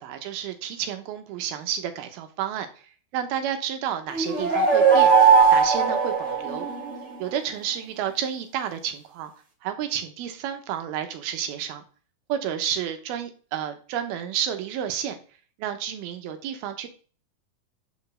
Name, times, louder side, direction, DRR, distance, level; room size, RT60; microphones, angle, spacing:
voice 1, 0.0-2.7 3.1-6.7 7.2-9.3 9.6-11.8 12.3-15.2 15.6-16.9, right 9 dB, 85° right, 7 dB, 3.0 m, -31 dB
sound 1, 4.1-7.0, right 6 dB, 25° right, 1.8 m, -18 dB
5.8 x 5.3 x 6.2 m, 0.40 s
omnidirectional pair, 4.2 m